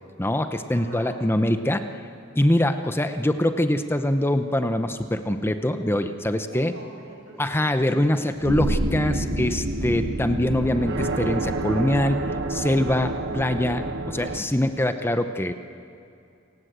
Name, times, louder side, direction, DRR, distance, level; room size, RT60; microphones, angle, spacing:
voice 1, 0.2-2.0 2.3-6.7 7.4-15.5, left 1 dB, 10° left, 8 dB, 0.8 m, -24 dB
voice 2, 0.7-1.1 6.4-7.7, right 2 dB, 85° right, 1 dB, 6.1 m, -44 dB
sound 1, 8.4-14.4, right 2 dB, 60° right, 1.2 m, -28 dB
28.0 x 18.0 x 8.1 m, 2.5 s
head